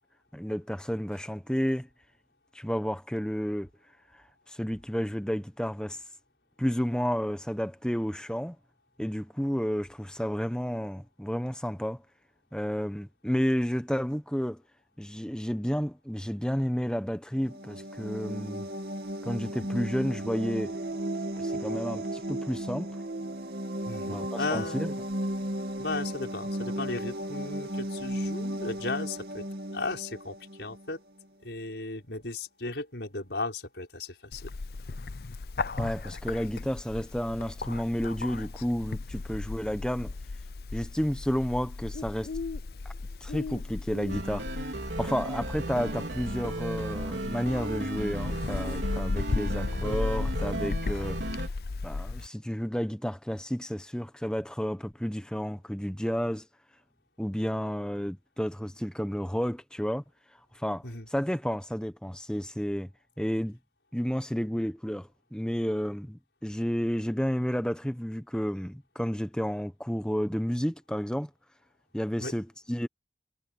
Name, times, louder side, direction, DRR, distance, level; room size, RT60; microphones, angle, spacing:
voice 1, 0.3-1.9 2.5-3.7 4.5-6.0 6.6-8.6 9.0-12.0 12.5-14.6 15.0-18.7 19.2-20.7 21.4-22.9 24.0-24.9 35.8-40.1 40.7-42.3 43.2-44.4 45.0-51.2 51.8-56.5 57.2-60.0 60.5-60.8 61.1-62.9 63.2-63.6 63.9-71.3 71.9-72.9, equal, 5° left, 1.0 m, -31 dB
sound 1, 17.4-30.9, right 1 dB, 65° right, 2.6 m, -35 dB
voice 2, 23.9-24.9 25.8-29.4 29.7-31.0 31.4-34.5 60.8-61.1 72.2-72.4, left 3 dB, 85° left, 5.5 m, -35 dB
Bird, 34.3-52.3, left 3 dB, 60° left, 0.6 m, -36 dB
sound 2, 44.1-51.5, right 1 dB, 90° right, 4.4 m, -35 dB
head